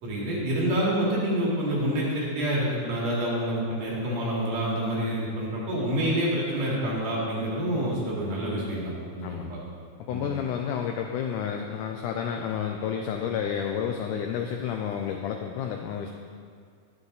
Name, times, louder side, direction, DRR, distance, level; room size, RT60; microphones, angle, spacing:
voice 1, 0.0-9.6 10.1-10.3, right 1 dB, 60° right, -5 dB, 3.9 m, -27 dB
voice 2, 10.0-16.1, left 8 dB, 85° left, 3 dB, 1.8 m, -30 dB
10.5 x 9.5 x 4.0 m, 2.1 s
omnidirectional pair, 4.3 m